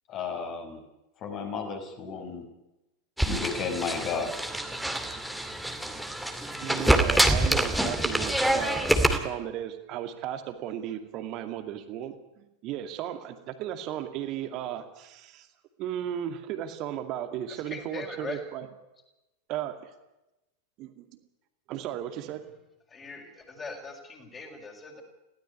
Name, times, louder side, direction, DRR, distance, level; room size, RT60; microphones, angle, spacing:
voice 1, 0.1-0.8 1.2-2.4 3.2-4.3, left 5 dB, 35° left, 5 dB, 5.2 m, -33 dB
sound 1, 3.2-9.2, right 1 dB, ahead, 2.4 m, -26 dB
voice 2, 6.6-15.5 15.8-18.7 19.5-19.9 20.8-21.0 21.7-22.4, right 11 dB, 40° right, 7 dB, 2.3 m, -35 dB
voice 3, 17.5-18.4 22.9-25.0, left 4 dB, 20° left, 1 dB, 5.8 m, -41 dB
21.0 x 17.0 x 9.8 m, 0.97 s
figure-of-eight pair, 90°, 0 cm